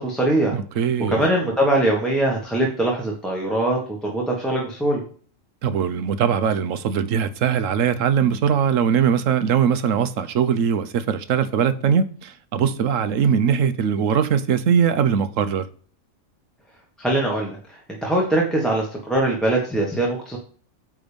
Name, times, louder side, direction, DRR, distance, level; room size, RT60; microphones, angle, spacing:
voice 1, 0.0-0.6 1.1-5.0 17.0-20.4, right 1 dB, ahead, 1.4 m, -22 dB
voice 2, 0.5-1.3 5.6-15.6, right 7 dB, 70° right, 1.1 m, -21 dB
9.1 x 3.5 x 5.2 m
omnidirectional pair, 1.4 m